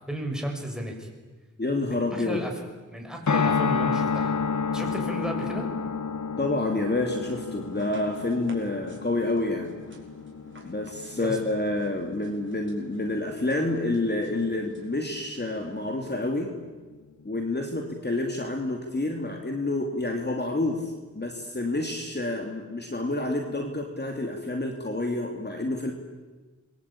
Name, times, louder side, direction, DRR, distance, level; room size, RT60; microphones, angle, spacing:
voice 1, 0.1-1.1 1.9-2.5 2.9-4.3 4.7-5.7 11.2-11.4, right 1 dB, ahead, 2 dB, 6.5 m, -34 dB
voice 2, 1.6-2.4 6.4-9.7 10.6-16.5 17.2-25.9, left 2 dB, 35° left, 2 dB, 2.9 m, -28 dB
sound 1, 3.3-15.5 15.8-15.9 16.1-16.2, left 5 dB, 70° left, 1.5 m, -31 dB
sound 2, 7.1-16.3, right 2 dB, 40° right, 5.7 m, -52 dB
27.5 x 23.0 x 8.8 m, 1.3 s
wide cardioid pair, 75°, 30 cm